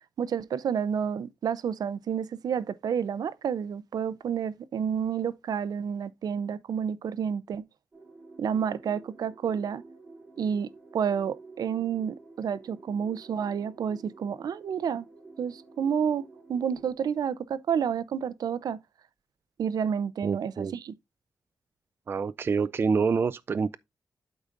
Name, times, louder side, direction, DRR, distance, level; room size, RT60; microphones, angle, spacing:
voice 1, 0.2-7.6 8.4-9.8 10.4-15.0 15.4-16.2 16.5-18.8 19.6-20.9, right 7 dB, 70° right, 0.6 m, -30 dB
sound 1, 7.9-16.9, right 3 dB, 20° right, 3.0 m, -51 dB
voice 2, 20.2-20.7 22.1-23.8, right 5 dB, 35° right, 0.3 m, -27 dB
12.0 x 4.8 x 2.5 m
wide cardioid pair, 170°, 7 cm